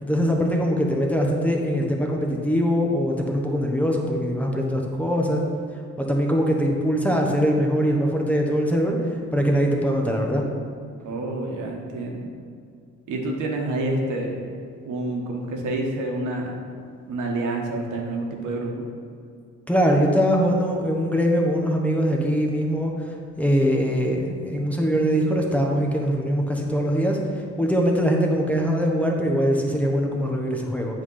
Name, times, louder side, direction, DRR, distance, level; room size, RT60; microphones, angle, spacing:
voice 1, 0.0-5.4 6.0-9.0 9.3-10.4 19.7-31.0, equal, 5° left, 0 dB, 1.0 m, -22 dB
voice 2, 11.0-12.3 13.1-14.6 14.8-16.6 17.1-18.9, right 2 dB, 80° right, 1 dB, 1.2 m, -28 dB
8.3 x 3.3 x 5.6 m, 2.3 s
cardioid pair, 90°, 30 cm